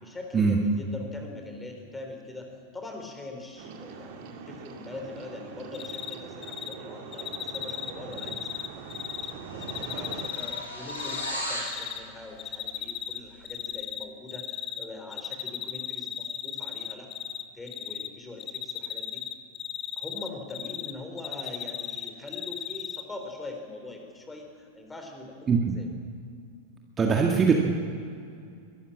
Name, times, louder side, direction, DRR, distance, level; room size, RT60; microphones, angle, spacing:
voice 1, 0.0-8.8 9.5-19.2 19.9-25.9, left 2 dB, 10° left, 3 dB, 3.8 m, -42 dB
sound 1, 3.6-10.3, right 5 dB, 50° right, 2.3 m, -42 dB
Cricket, 5.7-6.1 6.4-6.7 7.1-9.3 9.6-11.3 11.6-12.0 12.4-13.2 13.4-14.8 15.1-17.4 17.7-18.1 18.4-20.9 21.2-23.0, left 10 dB, 30° left, 1.0 m, -35 dB
sound 2, 8.6-8.8 9.1-11.8, equal, 75° left, 6.1 m, -36 dB
voice 2, 27.0-27.5, right 5 dB, 20° right, 1 dB, 1.9 m, -21 dB
22.0 x 14.0 x 8.7 m, 2.4 s
figure-of-eight pair, 90°, 0 cm